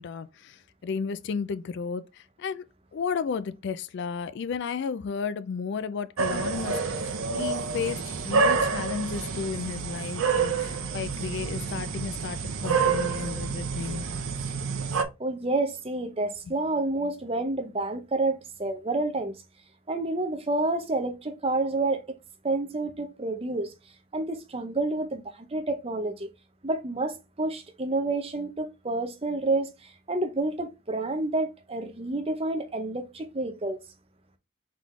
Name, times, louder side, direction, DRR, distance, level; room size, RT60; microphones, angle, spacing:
voice 1, 0.0-2.6 2.9-14.1, left 5 dB, 50° left, 0.3 m, -33 dB
sound 1, 6.2-15.0, right 5 dB, 70° right, 0.8 m, -28 dB
voice 2, 15.2-19.3 19.9-22.2 22.4-23.7 24.1-26.3 26.6-33.8, right 2 dB, 25° right, 0.6 m, -29 dB
3.9 x 3.7 x 3.1 m
head